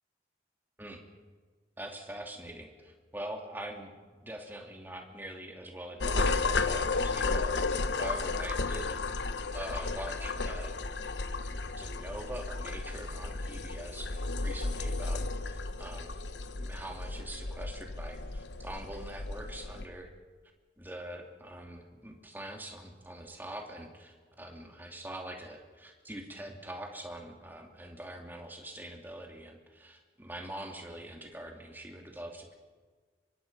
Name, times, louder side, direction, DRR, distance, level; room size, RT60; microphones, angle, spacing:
voice 1, 1.8-3.9 4.2-9.3 9.5-10.7 11.4-16.3 16.5-20.1 20.8-32.5, right 1 dB, 10° right, 2 dB, 2.6 m, -44 dB
sound 1, 6.0-19.8, left 3 dB, 85° left, 1.1 m, -33 dB
25.5 x 23.0 x 5.4 m, 1.4 s
head